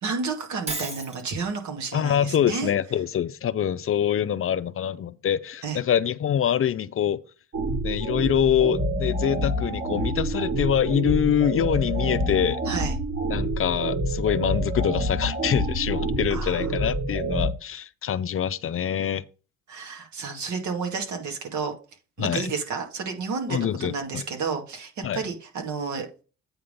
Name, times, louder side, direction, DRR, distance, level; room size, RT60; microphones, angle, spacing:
voice 1, 0.0-2.7 5.6-5.8 12.7-12.9 16.3-16.7 19.7-21.7 22.2-26.1, right 5 dB, 70° right, 2.1 m, -31 dB
Shatter, 0.7-1.2, right 2 dB, 20° right, 1.6 m, -32 dB
voice 2, 1.9-7.2 7.8-12.6 13.3-19.2 22.2-22.5 23.5-24.2 25.0-25.2, left 9 dB, 45° left, 0.5 m, -25 dB
sound 1, 7.5-17.5, right 1 dB, 40° right, 2.2 m, -27 dB
8.7 x 3.7 x 6.8 m
cardioid pair, 90°, 30 cm